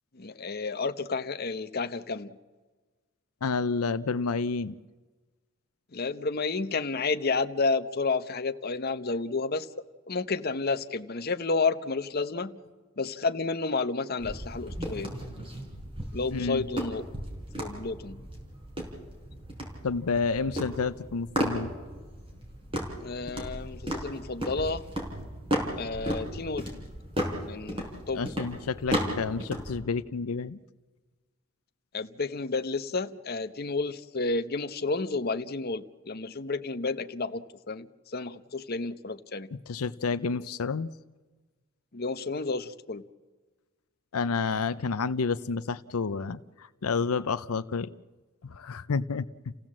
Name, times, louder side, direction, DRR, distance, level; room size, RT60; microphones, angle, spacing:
voice 1, 0.1-2.4 5.9-9.7 10.1-12.6 13.0-15.2 16.1-17.0 17.6-18.3 23.0-24.8 25.8-26.7 27.4-28.3 31.9-39.5 41.9-43.0, left 3 dB, 45° left, 10 dB, 0.9 m, -31 dB
voice 2, 3.4-4.7 16.3-16.6 19.8-21.7 28.1-30.6 39.7-40.9 44.1-47.9 48.4-49.3, left 4 dB, 85° left, 13 dB, 0.6 m, -30 dB
sound 1, 14.2-29.8, equal, 25° right, 4.4 m, -35 dB
29.0 x 16.5 x 7.5 m, 1.3 s
head